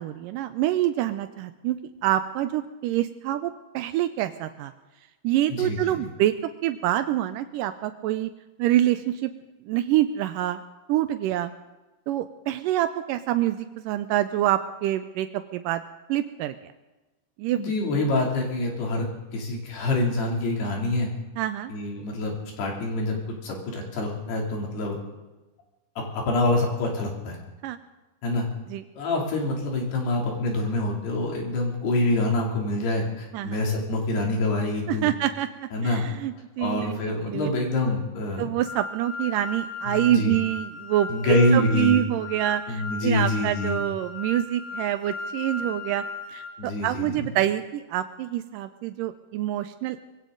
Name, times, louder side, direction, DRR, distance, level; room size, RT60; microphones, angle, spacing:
voice 1, 0.0-4.7 5.2-6.3 6.6-8.3 8.6-9.3 9.7-10.6 10.9-11.5 12.1-15.8 16.1-16.7 17.4-17.6 21.4-21.7 27.6-27.8 28.7-28.8 33.3-33.6 34.9-37.5 38.4-46.0 46.3-50.0, right 13 dB, 85° right, 9 dB, 1.9 m, -26 dB
voice 2, 5.5-6.1 17.5-19.1 19.3-21.1 21.7-23.2 23.4-25.0 26.0-27.4 28.2-28.5 29.0-35.1 35.7-36.0 36.6-38.5 39.9-40.4 41.1-42.0 42.7-43.8 46.6-47.2, left 2 dB, 85° left, 0 dB, 5.1 m, -26 dB
sound 1, 38.7-46.5, left 2 dB, 45° left, 5.9 m, -36 dB
21.5 x 16.5 x 3.9 m, 1.1 s
omnidirectional pair, 4.5 m